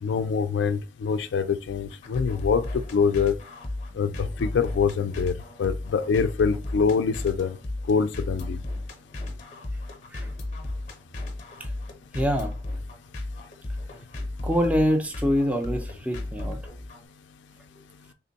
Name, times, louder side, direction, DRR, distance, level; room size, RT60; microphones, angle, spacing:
voice 1, 0.0-2.7 2.9-3.4 4.0-4.1 4.4-5.3 5.6-7.6 7.9-8.6, left 5 dB, 70° left, 0.3 m, -24 dB
sound 1, 1.7-17.0, left 2 dB, 40° left, 0.7 m, -34 dB
voice 2, 12.1-12.5 14.4-16.6, equal, 5° right, 0.4 m, -25 dB
3.4 x 2.2 x 3.9 m
head